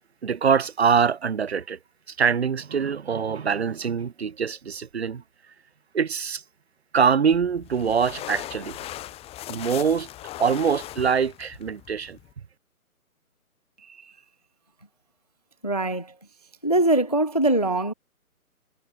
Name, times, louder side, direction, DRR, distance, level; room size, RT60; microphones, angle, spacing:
voice 1, 0.2-1.8 2.1-5.2 5.9-6.4 6.9-8.8 9.5-10.1 10.4-12.2, right 6 dB, 45° right, 1.3 m, -24 dB
sound 1, 7.3-12.3, left 14 dB, 15° left, 7.8 m, -39 dB
voice 2, 13.8-14.1 15.6-16.1 16.6-17.9, right 2 dB, 30° left, 0.4 m, -23 dB
figure-of-eight pair, 140°, 45 cm